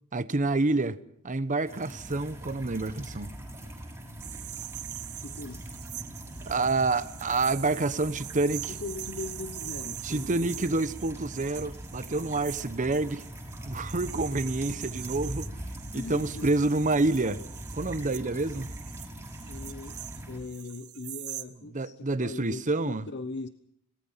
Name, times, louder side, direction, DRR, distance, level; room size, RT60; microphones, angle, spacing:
voice 1, 0.1-1.0 1.2-3.3 6.5-8.7 10.0-13.2 13.6-15.5 15.9-17.4 17.7-18.7 21.7-23.1, right 2 dB, 35° right, 0.9 m, -28 dB
sound 1, 1.7-20.4, right 1 dB, 10° right, 6.4 m, -42 dB
sound 2, 4.2-21.4, right 14 dB, 75° right, 1.3 m, -43 dB
voice 2, 5.2-5.7 8.3-10.8 15.9-16.6 19.5-20.0 20.3-23.5, left 3 dB, 50° left, 0.9 m, -40 dB
27.0 x 19.0 x 5.7 m
head